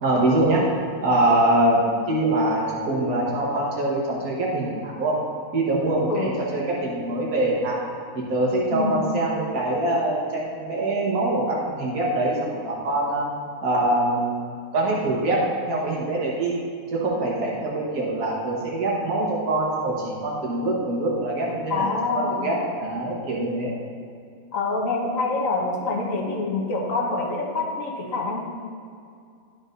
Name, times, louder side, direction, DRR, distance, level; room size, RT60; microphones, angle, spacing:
voice 1, 0.0-0.7 1.0-5.2 5.5-7.8 8.1-13.3 13.6-16.6 16.9-23.7, right 1 dB, 75° right, -4 dB, 1.8 m, -24 dB
voice 2, 8.7-9.0 21.7-22.6 24.5-28.4, left 3 dB, 65° left, -2 dB, 1.4 m, -26 dB
12.0 x 5.2 x 2.6 m, 2.3 s
omnidirectional pair, 1.6 m